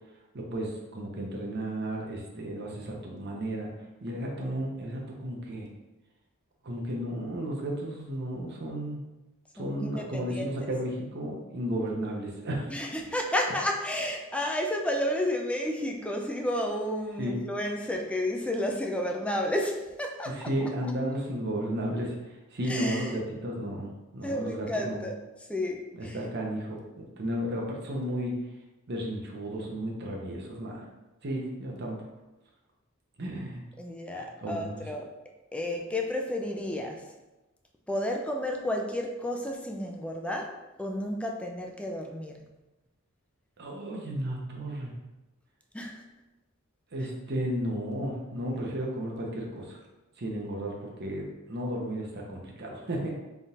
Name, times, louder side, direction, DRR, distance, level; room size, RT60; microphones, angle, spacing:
voice 1, 0.3-3.7 4.0-5.7 6.6-9.0 9.5-12.7 17.2-17.4 20.3-22.1 22.5-23.9 24.1-25.0 26.0-28.4 28.9-30.9 31.2-32.0 33.2-33.6 34.1-34.8 43.6-44.9 46.9-49.8 50.2-50.7 51.0-53.1, right 1 dB, 55° right, -1 dB, 0.8 m, -33 dB
voice 2, 9.6-10.7 12.7-20.4 22.6-23.1 24.2-25.2 25.5-26.2 33.8-35.1 35.5-37.1 37.9-42.3 45.7-46.1, left 1 dB, 5° left, 1 dB, 0.4 m, -31 dB
4.1 x 3.6 x 2.4 m, 1.0 s
head